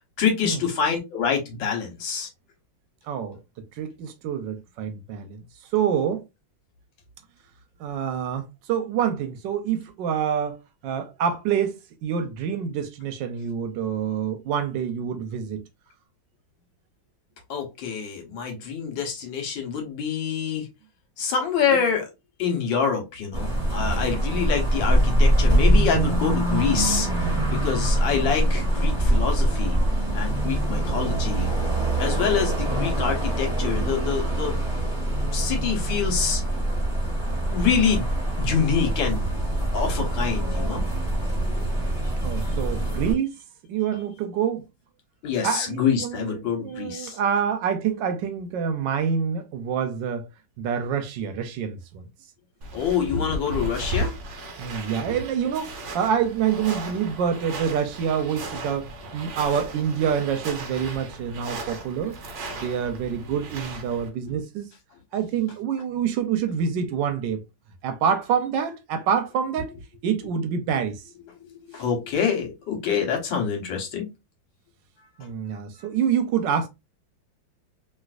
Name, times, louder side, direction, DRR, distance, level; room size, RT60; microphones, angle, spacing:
voice 1, 0.2-2.3 17.5-20.7 21.2-22.1 22.4-29.8 30.1-31.5 32.0-34.6 35.0-36.4 37.5-38.1 38.4-39.2 39.7-40.8 45.2-47.2 52.7-54.1 55.1-55.2 71.4-74.1, left 7 dB, 75° left, 1.7 m, -26 dB
voice 2, 3.1-3.4 3.8-5.4 5.7-6.2 7.8-15.6 42.2-43.3 43.7-44.6 45.4-46.3 46.6-50.3 50.6-52.1 54.6-62.2 62.6-64.7 65.1-67.4 67.8-69.7 70.0-71.0 75.2-76.7, right 8 dB, 75° right, 1.2 m, -26 dB
sound 1, 23.3-43.1, right 1 dB, 10° right, 1.5 m, -24 dB
sound 2, 52.6-64.1, right 1 dB, 60° right, 0.8 m, -36 dB
3.1 x 2.9 x 2.4 m
omnidirectional pair, 2.1 m